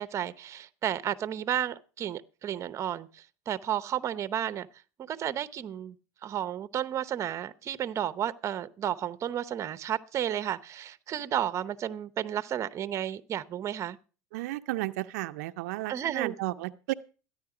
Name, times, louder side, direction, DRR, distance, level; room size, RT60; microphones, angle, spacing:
voice 1, 0.0-4.7 5.0-6.0 6.2-14.0 15.9-16.3, right 10 dB, 35° right, 0.8 m, -32 dB
voice 2, 14.3-16.9, right 18 dB, 85° right, 0.5 m, -33 dB
13.5 x 10.0 x 4.8 m
supercardioid pair, 120°, 8 cm